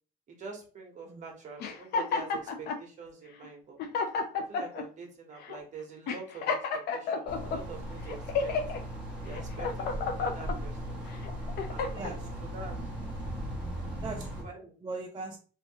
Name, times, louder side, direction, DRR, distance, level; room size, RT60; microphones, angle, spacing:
voice 1, 0.3-3.8 4.3-6.6 6.9-8.5 9.2-11.0 11.7-12.2 12.5-12.8 14.4-14.7, right 5 dB, 45° right, 2 dB, 1.2 m, -45 dB
sound 1, 1.6-2.8 3.4-3.5 3.8-4.9 5.4-5.6 6.1-7.6 8.1-8.8 9.3-10.6 11.1-12.1, left 5 dB, 70° left, 0.6 m, -31 dB
sound 2, 7.3-14.4, equal, 5° right, 1.2 m, -38 dB
voice 2, 11.9-12.5 14.0-14.5 14.8-15.4, right 3 dB, 25° right, -1 dB, 0.5 m, -40 dB
2.9 x 2.7 x 2.9 m, 0.39 s
cardioid pair, 110°, 17 cm